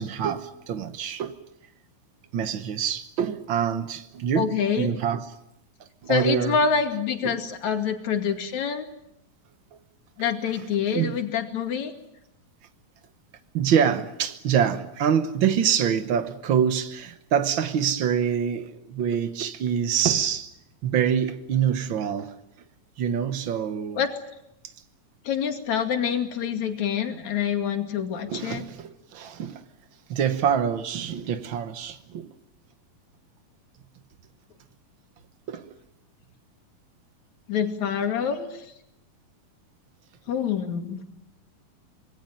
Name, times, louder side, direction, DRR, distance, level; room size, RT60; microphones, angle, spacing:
voice 1, 0.0-1.4 2.3-5.3 6.0-6.6 7.2-7.5 10.9-11.2 13.5-20.5 20.8-22.4 23.0-24.0 28.3-29.6 30.1-32.3 35.5-35.7, right 8 dB, 80° right, 1.1 m, -25 dB
voice 2, 4.4-4.9 6.1-8.9 10.2-11.9 24.0-24.1 25.3-28.6 37.5-38.6 40.3-41.0, left 7 dB, 60° left, 3.5 m, -26 dB
26.0 x 21.5 x 9.2 m
omnidirectional pair, 3.9 m